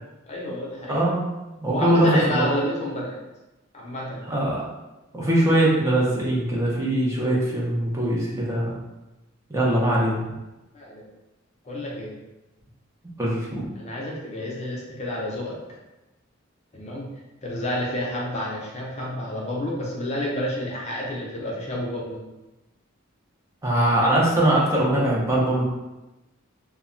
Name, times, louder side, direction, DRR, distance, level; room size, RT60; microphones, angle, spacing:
voice 1, 0.3-1.0 1.7-3.2 3.7-4.3 10.7-11.0 11.6-12.2 13.7-15.5 16.7-17.1 17.4-22.2 23.9-24.1, left 1 dB, 35° left, -3 dB, 0.5 m, -29 dB
voice 2, 0.9-1.2 1.6-2.5 4.3-4.6 5.1-8.8 9.5-10.2 13.2-13.7 23.6-25.6, right 1 dB, 15° right, -6 dB, 0.6 m, -21 dB
2.2 x 2.1 x 3.7 m, 1.0 s
head